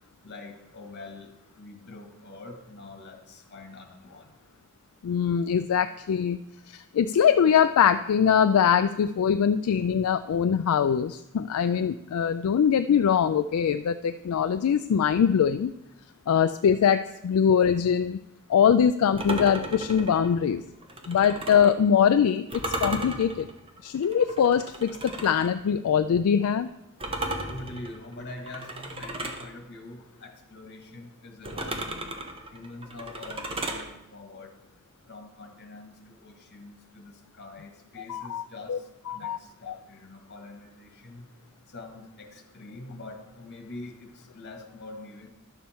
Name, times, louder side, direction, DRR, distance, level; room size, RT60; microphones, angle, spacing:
voice 1, 0.2-4.4 27.5-32.1 32.5-34.6 35.1-41.3 41.7-45.3, left 2 dB, 50° left, 3 dB, 1.5 m, -44 dB
voice 2, 5.0-6.4 6.7-15.7 16.3-18.2 18.5-20.6 21.1-23.5 23.8-26.7 38.1-38.8 39.1-39.4 39.7-39.8, left 7 dB, 70° left, 10 dB, 0.3 m, -23 dB
sound 1, 19.2-21.8 22.5-25.5 27.0-29.5 31.4-33.9, right 1 dB, 25° right, 1.0 m, -35 dB
11.5 x 7.1 x 4.3 m, 0.89 s
head